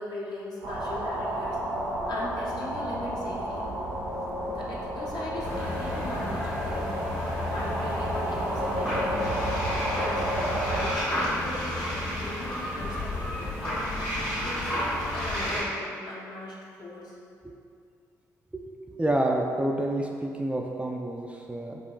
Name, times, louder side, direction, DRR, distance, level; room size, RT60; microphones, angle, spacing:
voice 1, 0.0-1.6 2.1-3.7 4.5-6.9 7.4-9.4 9.9-13.6 14.4-17.2, left 1 dB, 55° left, -5 dB, 0.9 m, -39 dB
sound 1, 0.6-10.9, equal, 85° right, 0.7 m, -31 dB
sound 2, 5.4-15.6, left 1 dB, 75° left, 1.5 m, -31 dB
voice 2, 18.9-21.8, right 1 dB, 15° right, 0 dB, 0.3 m, -28 dB
5.1 x 2.4 x 2.3 m, 2.4 s
hypercardioid pair, 40°, 9 cm